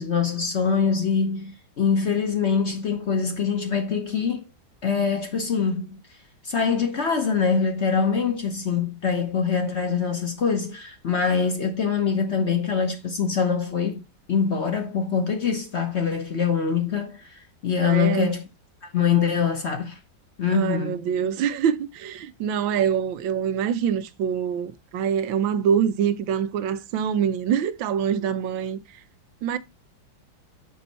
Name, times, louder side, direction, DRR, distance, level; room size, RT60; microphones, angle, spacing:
voice 1, 0.0-4.5 4.8-6.0 6.4-14.0 14.3-18.4 18.9-20.0 20.4-21.0, left 6 dB, 45° left, 0.9 m, -24 dB
voice 2, 17.8-18.3 20.5-29.0 29.4-29.6, right 8 dB, 90° right, 1.5 m, -25 dB
6.4 x 5.6 x 4.0 m
omnidirectional pair, 2.0 m